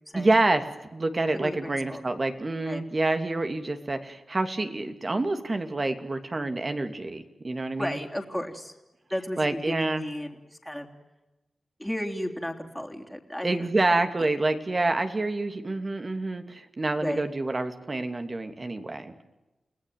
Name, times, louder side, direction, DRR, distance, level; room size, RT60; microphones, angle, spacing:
voice 1, 0.1-0.7 0.9-8.0 9.4-10.0 13.4-19.1, right 2 dB, 40° right, 7 dB, 2.8 m, -27 dB
voice 2, 1.3-2.0 2.7-2.8 7.8-8.7 9.1-10.9 11.8-13.7 17.0-17.2, equal, 5° left, 1 dB, 3.6 m, -34 dB
29.5 x 18.5 x 9.4 m, 1.1 s
cardioid pair, 70°, 0 cm